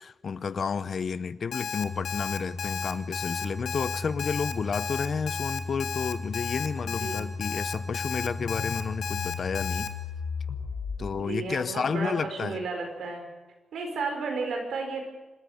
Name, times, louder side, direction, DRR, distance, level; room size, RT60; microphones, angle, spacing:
voice 1, 0.0-9.9 11.0-12.6, left 6 dB, 50° left, 16 dB, 0.6 m, -31 dB
Alarm, 1.5-9.9, left 6 dB, 85° left, 1.7 m, -33 dB
sound 1, 1.8-11.1, left 3 dB, 65° left, 4.2 m, -36 dB
voice 2, 6.8-7.3 11.2-13.2 13.7-15.0, right 4 dB, 85° right, 4 dB, 4.7 m, -33 dB
26.0 x 14.0 x 7.9 m, 1.2 s
wide cardioid pair, 145°, 0 cm